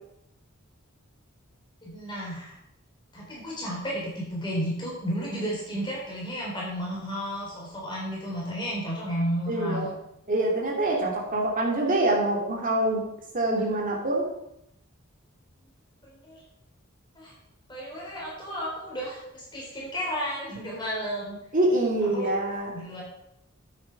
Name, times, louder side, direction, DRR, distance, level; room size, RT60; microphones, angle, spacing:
voice 1, 1.8-2.5 3.1-9.9 16.0-16.4 17.1-17.3 17.7-21.4 22.1-22.3 22.7-23.0, equal, 20° left, -5 dB, 4.0 m, -32 dB
voice 2, 9.5-9.9 10.3-13.0 13.3-14.2 21.5-22.7, right 1 dB, 40° right, -2 dB, 2.6 m, -25 dB
9.4 x 8.6 x 4.7 m, 0.79 s
head